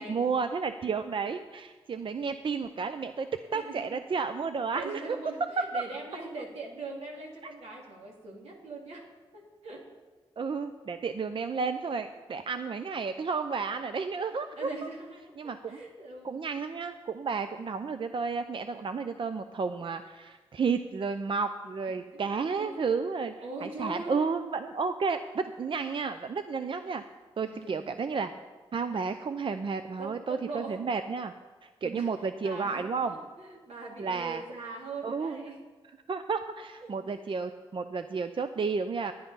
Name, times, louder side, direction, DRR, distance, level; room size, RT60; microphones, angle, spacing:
voice 1, 0.0-5.2 5.7-5.8 10.4-14.7 15.4-15.8 16.2-23.3 23.6-27.0 27.4-28.3 28.7-31.3 31.6-33.1 34.0-34.4 35.0-35.4 36.1-39.1, right 5 dB, 55° right, 9 dB, 0.5 m, -32 dB
voice 2, 3.5-4.0 4.7-9.1 9.3-9.8 14.6-16.4 17.6-17.7 22.1-22.2 22.6-22.9 23.4-24.4 27.4-27.8 30.0-30.8 31.8-32.1 32.4-35.7 36.8-36.9, right 3 dB, 85° right, -2 dB, 2.5 m, -42 dB
10.0 x 10.0 x 5.5 m, 1.4 s
cardioid pair, 55°, 11 cm